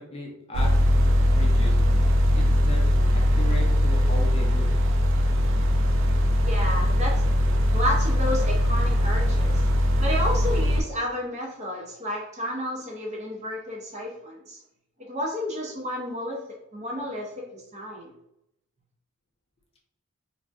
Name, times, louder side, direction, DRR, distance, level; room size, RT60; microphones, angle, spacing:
voice 1, 0.1-0.7 1.3-1.8 2.3-2.8 3.1-4.7, left 1 dB, 30° left, 0 dB, 0.5 m, -36 dB
sound 1, 0.5-10.8, equal, 65° right, 0.4 m, -21 dB
voice 2, 6.4-7.3 7.7-9.6 10.0-14.6 15.0-16.4 16.7-18.1, left 1 dB, 35° right, -2 dB, 0.7 m, -31 dB
2.6 x 2.1 x 3.4 m, 0.83 s
head